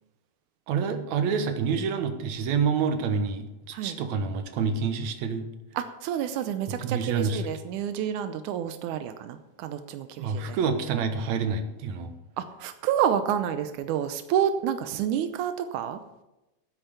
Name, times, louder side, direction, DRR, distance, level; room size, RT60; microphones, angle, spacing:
voice 1, 0.7-5.5 6.8-7.4 10.2-12.1, right 5 dB, 65° right, 7 dB, 1.9 m, -27 dB
voice 2, 5.7-10.6 12.4-16.0, right 9 dB, 85° right, 9 dB, 1.7 m, -29 dB
13.0 x 9.1 x 6.7 m, 0.96 s
omnidirectional pair, 4.5 m